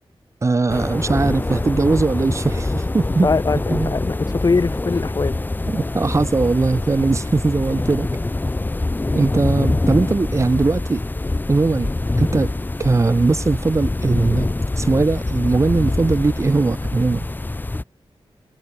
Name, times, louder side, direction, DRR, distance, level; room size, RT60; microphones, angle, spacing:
voice 1, 0.4-3.3 3.7-3.9 5.7-8.1 9.1-11.0 11.5-11.9 12.2-12.5 12.8-14.5 14.8-17.3, right 3 dB, 30° right, 3.2 m, -19 dB
sound 1, 0.7-17.8, left 2 dB, 20° left, 2.5 m, -24 dB
voice 2, 3.2-5.4, left 4 dB, 40° left, 6.2 m, -21 dB
wide cardioid pair, 160°, 9 cm